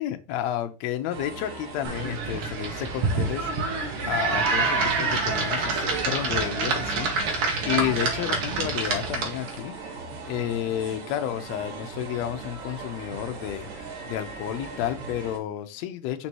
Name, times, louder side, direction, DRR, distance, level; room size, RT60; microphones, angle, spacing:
voice 1, 0.0-3.8 4.1-9.7 10.2-16.3, left 11 dB, 80° left, 7 dB, 1.7 m, -31 dB
sound 1, 1.1-15.4, right 4 dB, 80° right, 3.0 m, -40 dB
sound 2, 1.8-9.6, right 3 dB, 55° right, 1.9 m, -27 dB
5.3 x 4.2 x 4.4 m, 0.31 s
omnidirectional pair, 3.4 m